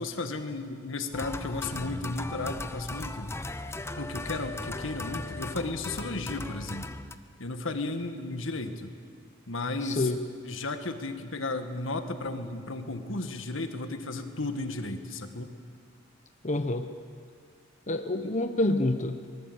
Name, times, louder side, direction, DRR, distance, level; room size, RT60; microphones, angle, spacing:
voice 1, 0.0-3.3 4.0-6.8 7.4-8.9 9.5-10.1 10.4-15.5 18.2-18.3, left 2 dB, 80° left, 7 dB, 1.8 m, -34 dB
sound 1, 1.1-7.2, left 2 dB, 15° left, 0.7 m, -37 dB
voice 2, 9.8-10.2 16.4-16.9 17.9-19.2, left 2 dB, 35° left, 7 dB, 0.9 m, -27 dB
23.5 x 20.5 x 8.2 m, 2.2 s
head